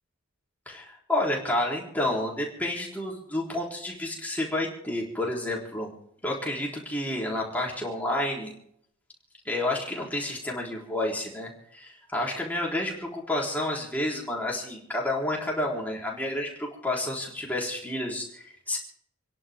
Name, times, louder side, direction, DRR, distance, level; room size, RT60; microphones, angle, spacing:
voice 1, 0.7-5.9 6.2-8.5 9.5-18.8, left 1 dB, 5° left, -3 dB, 3.8 m, -30 dB
29.0 x 11.0 x 3.7 m, 0.69 s
head